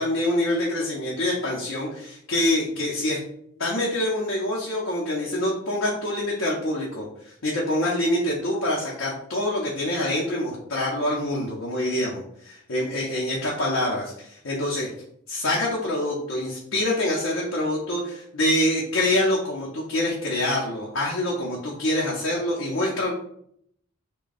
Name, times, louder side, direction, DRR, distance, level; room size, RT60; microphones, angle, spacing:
voice 1, 0.0-3.2 3.6-14.9 15.3-23.1, left 1 dB, 75° left, -4 dB, 0.7 m, -26 dB
3.5 x 2.2 x 3.9 m, 0.69 s
head